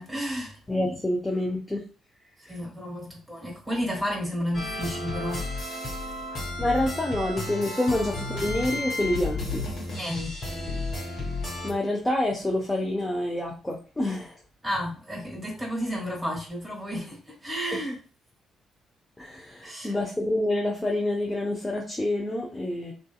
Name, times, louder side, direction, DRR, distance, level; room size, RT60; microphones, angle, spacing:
voice 1, 0.0-0.6 2.4-5.5 10.0-10.4 14.6-18.0 19.6-19.9, equal, 10° right, 1.5 m, -32 dB
voice 2, 0.7-1.8 2.4-2.6 6.6-9.7 11.6-14.4 17.7-17.8 19.2-22.9, left 1 dB, 15° left, 0.6 m, -27 dB
sound 1, 4.5-11.7, left 2 dB, 50° left, 0.9 m, -32 dB
2.6 x 2.4 x 2.3 m
figure-of-eight pair, 45°, 0 cm